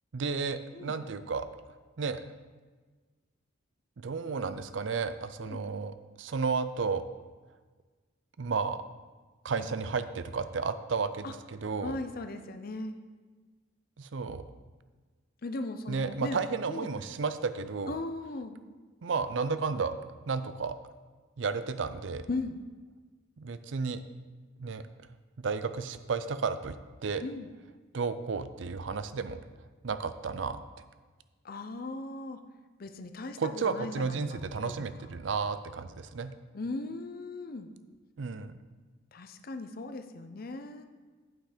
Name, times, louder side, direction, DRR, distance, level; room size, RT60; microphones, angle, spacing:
voice 1, 0.1-1.5 2.0-2.2 4.0-7.0 8.4-8.8 9.4-12.0 14.0-14.4 15.9-17.9 19.0-20.0 20.3-20.8 21.4-22.3 23.4-24.0 24.6-24.8 25.4-26.8 27.0-27.2 27.9-29.4 29.8-30.6 33.4-36.3 38.2-38.6, right 5 dB, 65° right, 12 dB, 0.5 m, -32 dB
voice 2, 11.8-13.0 15.4-16.4 16.7-16.9 17.9-18.6 22.3-22.6 27.2-27.5 31.4-32.4 32.8-34.4 35.0-35.1 36.5-37.7 39.1-40.9, left 2 dB, 50° left, 8 dB, 0.6 m, -38 dB
8.7 x 5.7 x 5.1 m, 1.4 s
head